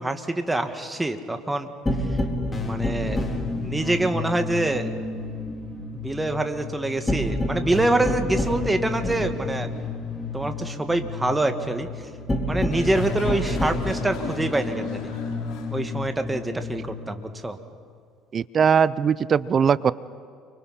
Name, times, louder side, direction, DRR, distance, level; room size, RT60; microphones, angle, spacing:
voice 1, 0.0-1.7 2.1-2.2 2.6-3.3 3.6-4.9 5.9-9.7 10.3-11.9 12.5-15.1 15.7-17.6, right 2 dB, 15° right, 7 dB, 2.0 m, -25 dB
sound 1, 1.9-17.1, left 2 dB, 15° left, 3.9 m, -29 dB
sound 2, 12.7-16.0, left 6 dB, 60° left, 3.2 m, -39 dB
voice 2, 18.3-19.9, right 7 dB, 40° right, 19 dB, 0.6 m, -20 dB
29.5 x 24.0 x 4.4 m, 2.1 s
hypercardioid pair, 60°, 0 cm